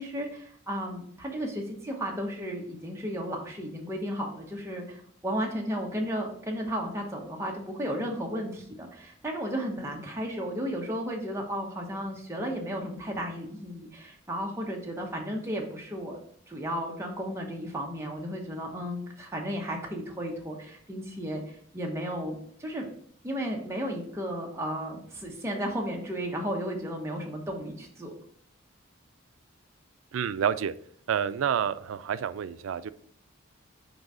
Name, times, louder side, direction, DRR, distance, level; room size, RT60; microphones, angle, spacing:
voice 1, 0.0-16.2 16.5-22.9 23.2-28.1, equal, 15° right, -1 dB, 1.0 m, -34 dB
voice 2, 30.1-30.7 31.1-32.9, right 8 dB, 75° right, 14 dB, 0.3 m, -28 dB
5.3 x 4.0 x 4.8 m, 0.62 s
head